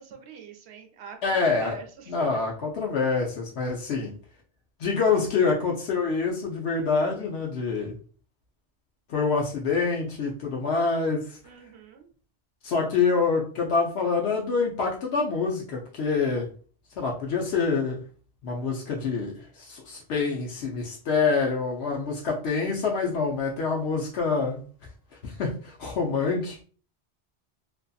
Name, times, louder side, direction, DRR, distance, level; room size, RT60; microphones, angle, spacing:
voice 1, 0.0-2.1 11.4-12.1, right 6 dB, 80° right, 5 dB, 0.8 m, -44 dB
voice 2, 1.2-1.8 2.1-4.1 4.8-7.9 9.1-11.4 12.6-16.5 17.0-18.0 18.4-24.6 25.2-26.6, left 4 dB, 80° left, -1 dB, 0.8 m, -26 dB
2.5 x 2.5 x 2.3 m, 0.40 s
omnidirectional pair, 1.1 m